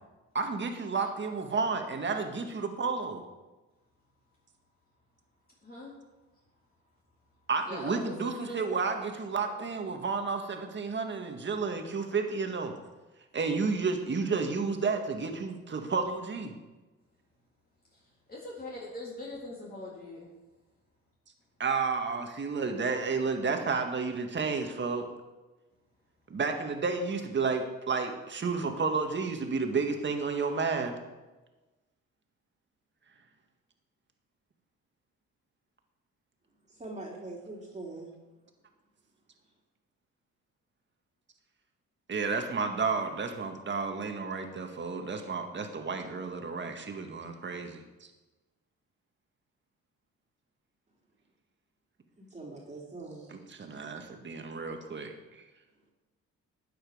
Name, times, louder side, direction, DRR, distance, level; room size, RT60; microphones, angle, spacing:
voice 1, 0.3-3.2 7.5-12.7 13.3-16.5 21.6-25.1 26.3-30.9 42.1-47.8 53.6-55.4, right 4 dB, 40° right, 5 dB, 1.8 m, -31 dB
voice 2, 5.6-5.9 7.7-9.0 9.5-9.6 17.9-18.0 18.3-20.3, left 1 dB, 30° left, -5 dB, 3.6 m, -42 dB
voice 3, 36.7-38.1 39.4-39.5 52.2-54.0, right 2 dB, 25° right, -2 dB, 2.9 m, -44 dB
12.5 x 8.7 x 5.0 m, 1.1 s
cardioid pair, 90°, 30 cm